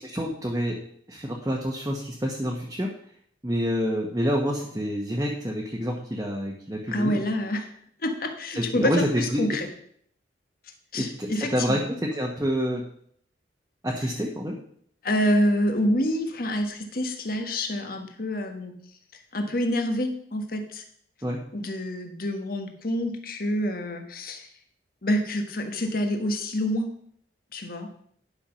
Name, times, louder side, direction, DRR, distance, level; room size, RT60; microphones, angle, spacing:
voice 1, 0.1-0.8 1.1-2.9 3.4-7.1 8.5-9.6 11.0-12.8 13.8-14.5 21.2-21.4, equal, 20° right, -2 dB, 1.2 m, -27 dB
voice 2, 6.9-7.7 8.0-9.7 10.9-11.8 15.0-18.7 19.3-20.8 21.5-24.5 25.0-26.9 27.5-27.9, equal, 50° left, 5 dB, 1.4 m, -27 dB
10.5 x 5.8 x 5.7 m, 0.64 s
head